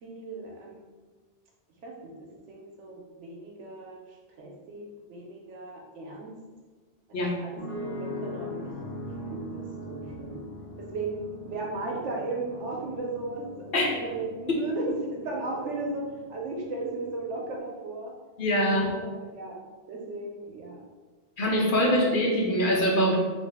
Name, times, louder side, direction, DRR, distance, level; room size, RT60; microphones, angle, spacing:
voice 1, 0.0-0.9 1.8-6.3 7.1-10.4 10.9-16.0 16.3-18.1 18.6-19.6 19.9-20.8, right 2 dB, 85° right, -1 dB, 1.1 m, -36 dB
sound 1, 7.6-17.6, equal, 20° left, 0.3 m, -41 dB
voice 2, 18.4-18.9 21.4-23.2, equal, 55° left, -2 dB, 0.7 m, -23 dB
3.2 x 2.4 x 3.4 m, 1.3 s
omnidirectional pair, 1.2 m